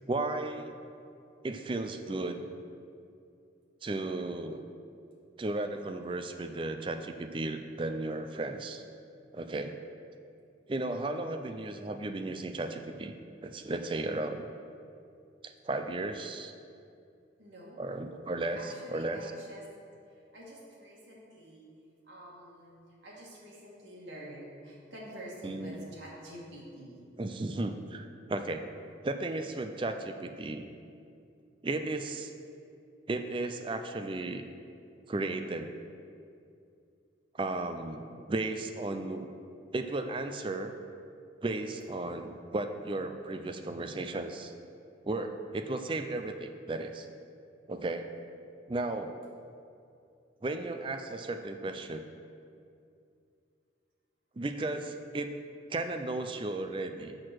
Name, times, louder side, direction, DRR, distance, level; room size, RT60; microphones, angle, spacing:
voice 1, 0.1-0.7 1.4-2.4 3.8-4.6 5.4-8.8 9.3-9.7 10.7-13.1 13.4-14.5 15.4-16.5 17.8-19.2 25.4-25.8 27.2-28.7 29.0-30.7 31.6-32.3 33.1-34.4 35.1-35.7 37.3-39.3 39.7-40.7 41.4-44.5 45.0-47.1 47.7-48.1 48.7-49.2 50.4-52.0 54.4-55.3 55.7-57.2, right 2 dB, 25° right, 7 dB, 0.4 m, -34 dB
voice 2, 10.9-11.3 17.4-18.1 18.6-19.6 20.1-21.7 22.0-27.0, right 1 dB, 80° right, -5 dB, 2.1 m, -48 dB
6.5 x 6.4 x 6.1 m, 2.5 s
head